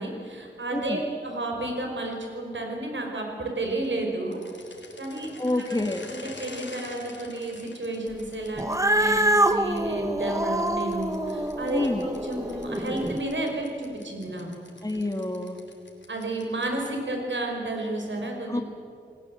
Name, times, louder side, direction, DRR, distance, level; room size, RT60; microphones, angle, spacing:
voice 1, 0.0-4.4 5.0-14.5 16.1-18.6, right 2 dB, 75° right, 1 dB, 5.3 m, -32 dB
sound 1, 4.3-9.8 10.6-17.1, left 3 dB, 70° left, 3.5 m, -47 dB
voice 2, 5.4-6.1 11.7-12.1 14.8-15.6 18.5-18.6, left 1 dB, 20° left, 7 dB, 1.6 m, -28 dB
Cat, 8.6-13.2, right 1 dB, 15° right, 1.4 m, -26 dB
29.0 x 18.5 x 7.8 m, 2.5 s
wide cardioid pair, 85°, 19 cm